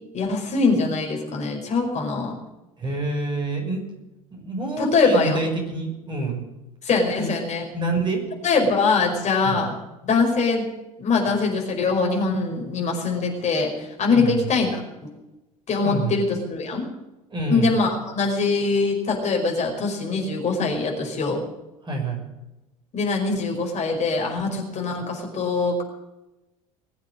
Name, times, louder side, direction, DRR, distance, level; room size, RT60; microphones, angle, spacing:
voice 1, 0.1-2.3 4.8-5.4 6.8-7.7 8.4-9.7 10.0-10.7 11.0-14.8 15.7-16.9 17.5-21.4 22.9-25.8, left 4 dB, 40° left, 1 dB, 5.2 m, -23 dB
voice 2, 2.8-3.8 4.3-6.4 7.2-7.3 7.7-8.2 9.4-9.7 14.1-14.5 15.8-16.2 17.3-17.8 21.8-22.2, right 3 dB, 25° right, 1 dB, 6.1 m, -27 dB
21.0 x 8.2 x 7.7 m, 0.99 s
figure-of-eight pair, 70°, 18 cm